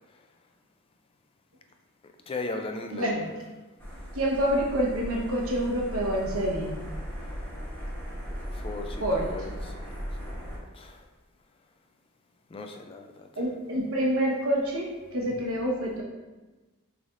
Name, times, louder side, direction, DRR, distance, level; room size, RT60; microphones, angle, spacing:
voice 1, 2.3-3.3 8.5-9.8 10.7-11.0 12.5-13.3, left 2 dB, 25° left, 4 dB, 0.3 m, -37 dB
voice 2, 2.9-3.3 4.1-6.8 9.0-9.5 13.4-16.0, equal, 70° right, -3 dB, 1.1 m, -27 dB
sound 1, 3.8-10.6, equal, 10° left, 1.0 m, -37 dB
6.2 x 3.4 x 2.5 m, 1.2 s
head